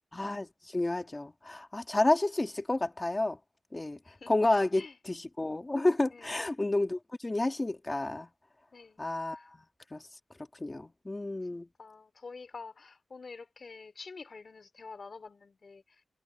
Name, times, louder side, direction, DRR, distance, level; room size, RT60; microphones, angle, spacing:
voice 1, 0.1-3.4 3.7-4.0 4.3-8.3 9.0-9.6 9.9-10.0 10.6-11.7, left 2 dB, 20° left, 2.6 m, -30 dB
voice 2, 8.7-9.5 11.5-16.0, left 4 dB, 45° left, 3.8 m, -48 dB
wide cardioid pair, 155°, 0 cm